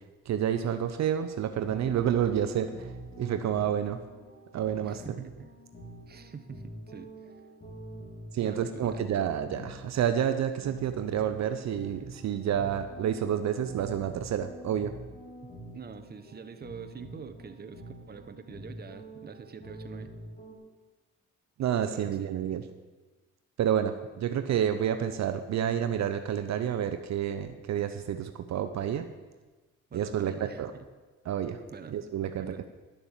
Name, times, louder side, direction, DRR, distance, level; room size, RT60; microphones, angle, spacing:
voice 1, 0.3-4.0 4.5-5.0 8.3-14.9 21.6-22.6 23.6-29.1 29.9-30.7 31.2-31.6 31.9-32.5, right 9 dB, 65° right, 9 dB, 0.8 m, -29 dB
sound 1, 1.3-20.6, right 1 dB, 30° left, 3.1 m, -46 dB
voice 2, 4.8-5.5 6.1-7.3 8.4-9.0 15.4-20.2 21.9-22.3 29.9-30.8 31.7-32.0 32.4-32.7, right 6 dB, 30° right, 8 dB, 1.0 m, -45 dB
11.5 x 7.0 x 7.2 m, 1.2 s
cardioid pair, 90°, 30 cm